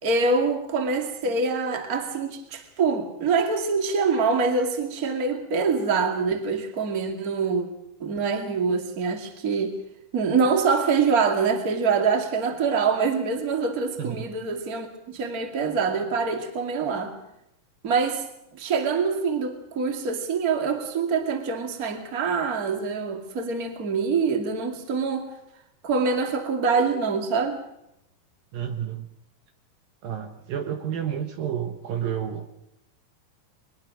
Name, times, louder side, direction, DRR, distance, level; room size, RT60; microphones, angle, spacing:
voice 1, 0.0-7.7 8.0-9.7 10.1-17.1 17.8-18.2 18.5-25.3 25.8-27.6, right 5 dB, 30° right, 4 dB, 2.0 m, -25 dB
voice 2, 14.0-14.3 28.5-29.1 30.0-32.5, right 9 dB, 65° right, 6 dB, 2.7 m, -30 dB
22.5 x 20.5 x 6.2 m, 0.81 s
omnidirectional pair, 4.8 m